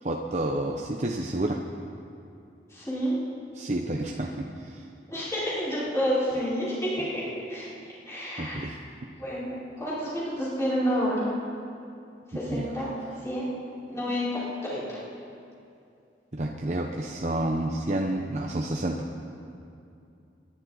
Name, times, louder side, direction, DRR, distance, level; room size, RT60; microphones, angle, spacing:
voice 1, 0.0-1.6 3.5-4.9 8.4-8.8 12.5-12.8 16.3-19.0, right 1 dB, 40° right, 0 dB, 0.9 m, -30 dB
voice 2, 2.7-3.2 5.1-7.2 7.5-7.7 8.0-8.6 9.2-11.3 12.3-12.9 13.2-13.5 13.9-15.0, equal, 15° left, -9 dB, 4.5 m, -29 dB
28.0 x 11.0 x 4.1 m, 2.6 s
head